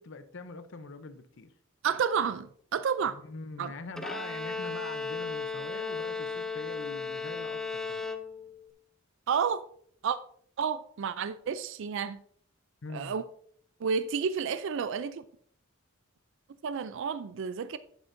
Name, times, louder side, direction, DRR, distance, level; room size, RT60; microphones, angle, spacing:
voice 1, 0.0-1.5 3.1-8.1 12.8-13.2, left 3 dB, 60° left, 0.7 m, -43 dB
voice 2, 1.8-3.2 3.6-3.7 9.3-9.7 10.0-10.2 10.6-12.2 12.9-13.2 13.8-15.2 16.6-17.8, right 6 dB, 60° right, 0.4 m, -30 dB
Bowed string instrument, 4.0-8.7, left 4 dB, ahead, 0.4 m, -35 dB
10.5 x 7.9 x 2.6 m
head